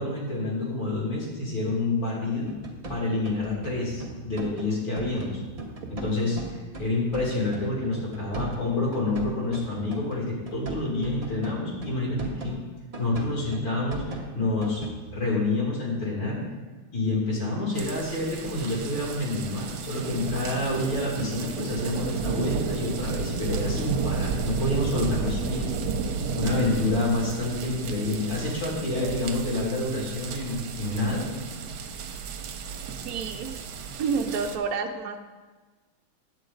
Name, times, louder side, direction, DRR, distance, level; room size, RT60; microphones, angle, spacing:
voice 1, 0.0-2.5 2.9-5.4 5.9-6.4 6.8-12.6 13.0-14.9 15.1-16.4 16.9-25.7 26.3-31.3, left 2 dB, 65° left, -5 dB, 3.5 m, -28 dB
sound 1, 2.5-4.7 5.0-12.6 12.9-15.1, right 3 dB, 35° right, 0.6 m, -38 dB
sound 2, 17.8-34.6, right 5 dB, 75° right, 1.5 m, -33 dB
voice 2, 33.0-33.5 34.0-35.2, right 5 dB, 60° right, 4 dB, 1.0 m, -29 dB
9.9 x 8.1 x 3.9 m, 1.3 s
omnidirectional pair, 2.3 m